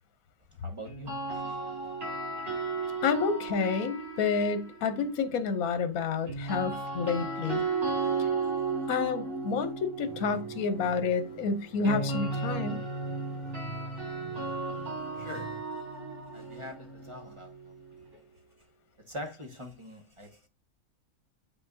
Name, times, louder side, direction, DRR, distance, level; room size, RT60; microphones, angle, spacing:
voice 1, 0.6-1.6 15.1-15.6 16.3-17.8 19.0-20.5, equal, 25° right, 1.1 m, -44 dB
sound 1, 0.9-5.0 6.3-18.1, right 4 dB, 45° right, 5.3 m, -35 dB
voice 2, 3.0-7.6 8.9-12.8, left 5 dB, 75° left, 1.2 m, -29 dB
sound 2, 10.0-15.6, right 3 dB, 40° left, 1.4 m, -49 dB
8.3 x 6.0 x 2.7 m
omnidirectional pair, 1.5 m